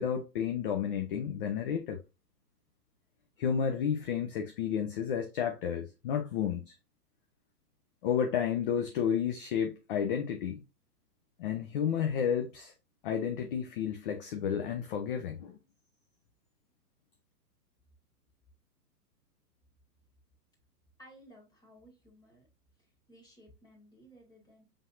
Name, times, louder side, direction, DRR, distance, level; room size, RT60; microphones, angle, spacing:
voice 1, 0.0-2.0 3.4-6.7 8.0-10.6 11.4-12.7 13.0-15.6, left 8 dB, 35° left, 0.6 m, -31 dB
voice 2, 21.0-22.4 22.8-24.7, equal, 10° left, 2.1 m, -57 dB
5.6 x 3.5 x 2.6 m
hypercardioid pair, 125°, 48 cm